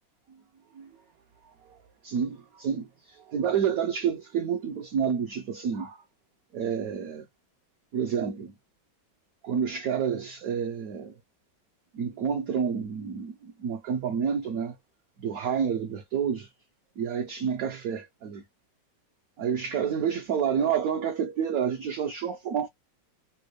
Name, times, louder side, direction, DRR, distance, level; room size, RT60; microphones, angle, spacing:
voice 1, 1.4-1.8 2.0-6.0 6.5-7.3 7.9-8.5 9.4-11.1 11.9-14.8 15.2-16.5 17.0-18.4 19.4-22.7, right 7 dB, 65° right, 0.9 m, -29 dB
3.4 x 2.3 x 3.1 m
omnidirectional pair, 2.1 m